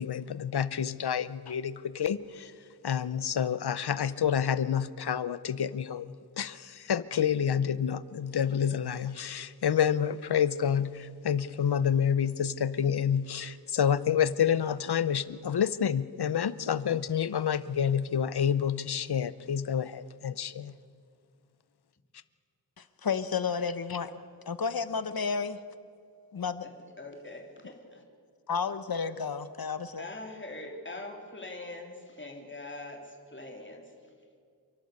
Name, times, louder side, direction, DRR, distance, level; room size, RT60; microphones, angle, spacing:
voice 1, 0.0-2.5 2.8-20.7, left 8 dB, 80° left, 17 dB, 0.7 m, -28 dB
voice 2, 22.8-24.1 24.5-25.6 26.3-26.7 28.5-30.0, left 5 dB, 65° left, 13 dB, 1.1 m, -31 dB
voice 3, 26.6-28.0 30.0-33.9, left 2 dB, 30° left, 1 dB, 3.1 m, -43 dB
28.5 x 11.5 x 8.2 m, 2.3 s
wide cardioid pair, 65°, 38 cm